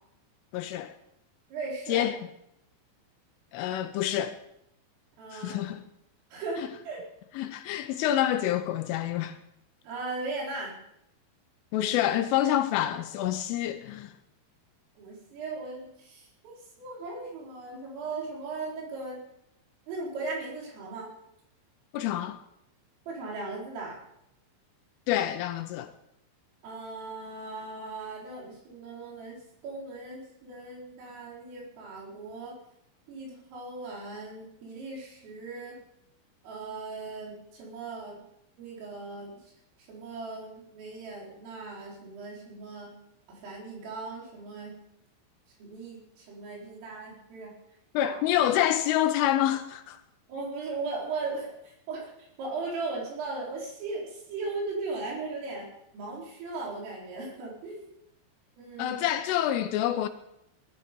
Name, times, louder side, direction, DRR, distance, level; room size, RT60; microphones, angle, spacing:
voice 1, 0.5-0.9 1.9-2.2 3.5-4.4 5.3-5.8 7.4-9.4 11.7-14.1 21.9-22.4 25.1-25.9 47.9-50.0 58.8-60.1, left 12 dB, 85° left, 3.3 m, -27 dB
voice 2, 1.5-2.1 5.2-5.6 6.3-7.0 9.8-10.8 15.0-19.2 19.9-21.1 23.1-24.0 26.6-29.4 29.6-32.6 33.1-35.8 36.4-38.2 38.6-39.3 39.9-42.9 43.3-44.8 45.6-47.5 48.0-48.2 50.3-55.7 55.9-57.8 58.6-59.0, right 3 dB, 90° right, 7.1 m, -38 dB
19.5 x 13.0 x 5.3 m
omnidirectional pair, 5.7 m